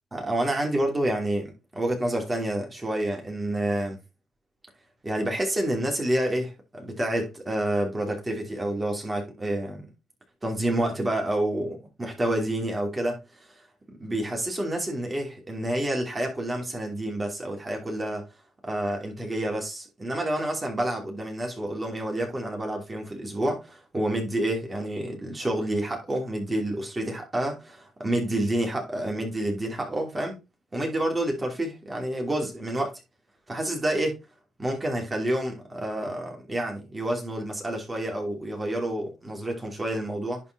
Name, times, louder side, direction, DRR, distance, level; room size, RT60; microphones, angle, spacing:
voice 1, 0.1-4.0 5.0-9.9 10.4-13.2 13.9-18.3 18.6-30.4 30.7-32.9 33.5-34.2 34.6-40.4, right 1 dB, 20° right, 2.9 m, -28 dB
11.0 x 4.4 x 4.0 m
cardioid pair, 90°, 0 cm